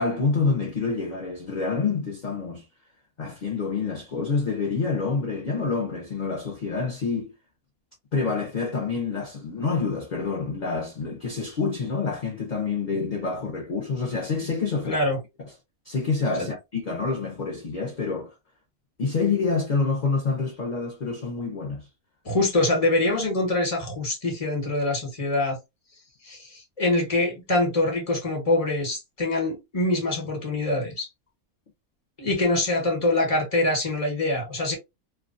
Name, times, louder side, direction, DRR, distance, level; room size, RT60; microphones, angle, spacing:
voice 1, 0.0-2.6 3.2-7.3 8.1-15.0 15.4-15.5 15.9-18.3 19.0-21.9 32.3-32.4, left 4 dB, 55° left, 0.5 m, -27 dB
voice 2, 14.9-15.2 16.4-16.5 22.2-25.6 26.2-31.1 32.2-34.8, left 2 dB, 30° left, 1.0 m, -24 dB
2.4 x 2.2 x 2.5 m
omnidirectional pair, 1.5 m